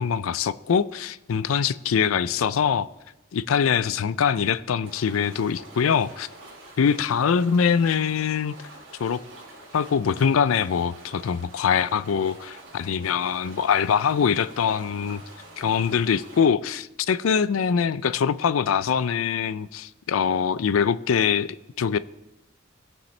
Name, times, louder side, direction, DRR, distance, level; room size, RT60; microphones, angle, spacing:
voice 1, 0.0-2.9 3.3-6.3 6.8-8.6 9.0-9.2 9.7-15.2 15.6-22.0, left 7 dB, 85° left, 17 dB, 0.4 m, -23 dB
sound 1, 4.8-16.4, right 2 dB, 70° right, 3.3 m, -46 dB
18.5 x 7.2 x 3.2 m, 0.93 s
head